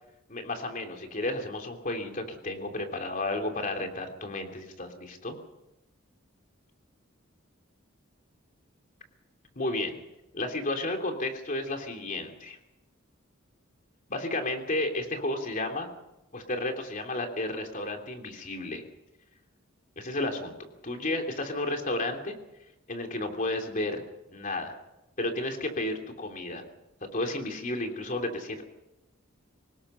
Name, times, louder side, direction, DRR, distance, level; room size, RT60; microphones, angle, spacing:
voice 1, 0.3-5.4 9.5-10.0 10.3-12.6 14.1-15.9 16.3-18.8 20.0-20.5 20.8-22.4 22.9-24.0 24.3-24.8 25.2-26.6 27.0-28.6, left 2 dB, 40° left, 3 dB, 3.1 m, -32 dB
24.5 x 19.5 x 5.7 m, 0.94 s
head